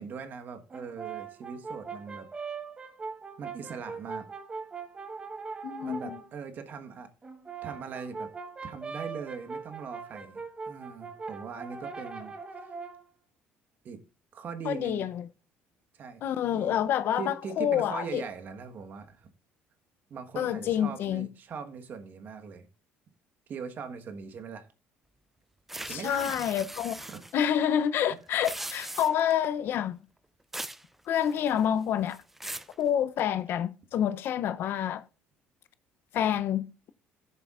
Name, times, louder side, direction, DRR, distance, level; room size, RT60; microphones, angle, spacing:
voice 1, 0.0-2.3 3.4-4.3 5.8-7.1 7.6-8.3 8.6-12.3 13.8-14.0 14.3-15.1 15.9-16.2 16.5-16.9 17.2-19.3 20.1-22.7 23.5-24.7 25.8-26.5 27.1-27.2 28.1-28.2, right 6 dB, 45° right, 1.3 m, -40 dB
Brass instrument, 0.7-6.3 7.2-13.1, right 5 dB, 25° right, 1.0 m, -41 dB
voice 2, 5.6-6.2 14.7-15.3 16.2-18.2 20.4-21.3 25.9-26.9 27.3-30.0 31.1-32.2 32.8-35.0 36.1-36.7, left 9 dB, 60° left, 0.5 m, -28 dB
sound 1, 25.7-27.3 28.3-29.3 30.5-30.8 31.2-31.7 32.1-32.7, right 1 dB, 5° right, 0.4 m, -40 dB
16.0 x 6.8 x 2.4 m
cardioid pair, 120°, 4 cm